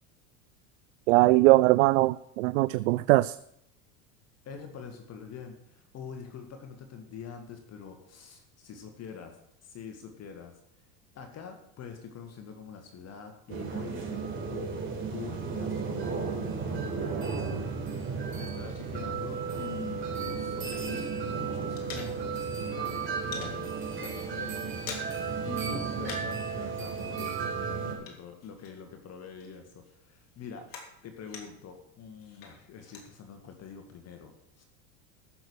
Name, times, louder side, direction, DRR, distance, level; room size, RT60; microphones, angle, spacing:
voice 1, 1.1-3.4, right 20 dB, 75° right, 17 dB, 0.5 m, -21 dB
voice 2, 4.5-9.4 9.6-10.6 11.1-14.2 14.5-14.8 15.1-22.5 22.8-23.7 24.0-30.7 31.0-34.6, left 6 dB, 40° left, 5 dB, 2.0 m, -45 dB
sound 1, 13.5-27.9, right 5 dB, 30° right, 4.2 m, -34 dB
sound 2, 19.7-21.2 21.4-22.6 22.8-23.6 24.0-24.2 24.5-25.3 25.6-26.5 26.7-29.1 29.4-31.7 32.2-33.1, left 5 dB, 60° left, 3.3 m, -46 dB
14.5 x 6.6 x 6.4 m, 0.75 s
supercardioid pair, 105°, 38 cm